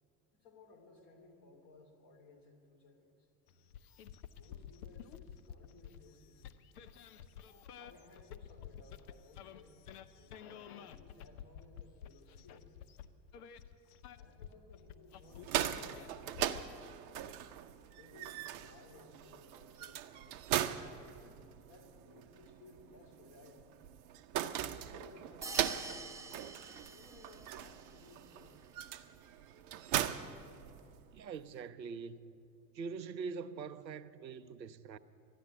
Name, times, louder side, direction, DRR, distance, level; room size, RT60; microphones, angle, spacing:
voice 1, 0.3-3.3 4.4-6.6 7.5-9.8 10.1-12.9 14.1-16.9 17.9-20.6 21.2-23.7 24.3-26.1 26.9-28.6, left 3 dB, 40° left, 2.7 m, -60 dB
sound 1, 3.5-16.7, left 9 dB, 60° left, 0.7 m, -52 dB
sound 2, 15.2-31.2, right 11 dB, 45° right, 0.7 m, -40 dB
sound 3, 25.4-27.7, right 3 dB, 5° right, 0.6 m, -46 dB
voice 2, 31.1-32.3 32.7-35.0, right 5 dB, 90° right, 0.6 m, -43 dB
12.5 x 10.0 x 9.9 m
figure-of-eight pair, 75°, 50 cm